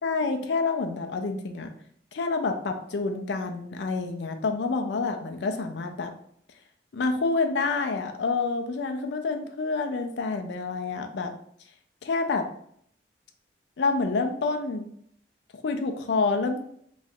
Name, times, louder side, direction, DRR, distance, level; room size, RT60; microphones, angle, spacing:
voice 1, 0.0-1.7 2.1-6.1 6.9-11.3 12.0-12.4 13.8-14.8 15.6-16.6, left 4 dB, 75° left, 5 dB, 0.4 m, -28 dB
3.0 x 2.4 x 4.2 m, 0.65 s
head